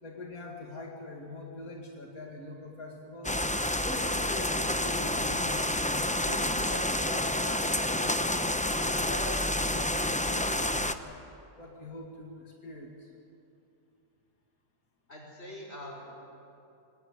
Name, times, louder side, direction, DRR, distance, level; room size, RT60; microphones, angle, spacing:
voice 1, 0.0-3.4 3.8-5.9 6.2-11.3 11.5-13.1, left 2 dB, 90° left, 0 dB, 2.7 m, -43 dB
sound 1, 3.2-10.9, left 1 dB, 10° left, 0.5 m, -29 dB
voice 2, 15.1-16.1, left 1 dB, 45° left, -1 dB, 6.3 m, -43 dB
25.5 x 19.0 x 9.8 m, 2.7 s
omnidirectional pair, 1.5 m